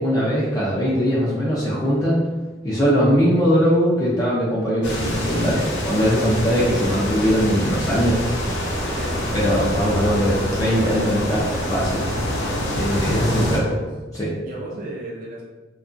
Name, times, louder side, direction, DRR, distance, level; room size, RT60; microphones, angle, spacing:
voice 1, 0.0-2.2 2.6-8.6 9.3-12.0 12.7-13.6 14.2-14.3, equal, 20° left, -8 dB, 0.5 m, -21 dB
sound 1, 4.8-13.6, equal, 60° left, 0.7 m, -26 dB
voice 2, 13.1-13.9 14.4-15.4, right 2 dB, 45° right, -3 dB, 0.4 m, -33 dB
2.8 x 2.3 x 2.5 m, 1.2 s
head